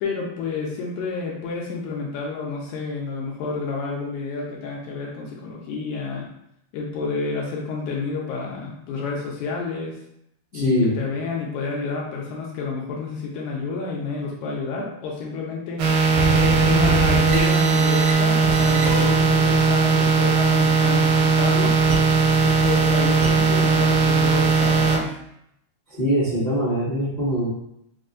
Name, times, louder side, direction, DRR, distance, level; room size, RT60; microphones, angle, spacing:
voice 1, 0.0-6.3 6.7-10.0 10.5-15.8 16.4-21.8 22.4-25.1, left 4 dB, 80° left, -2 dB, 1.9 m, -29 dB
voice 2, 10.5-11.0 25.9-27.5, equal, 40° left, -11 dB, 0.6 m, -22 dB
sound 1, 15.8-25.0, right 4 dB, 85° right, 2.1 m, -18 dB
4.8 x 2.2 x 2.5 m, 0.76 s
omnidirectional pair, 3.5 m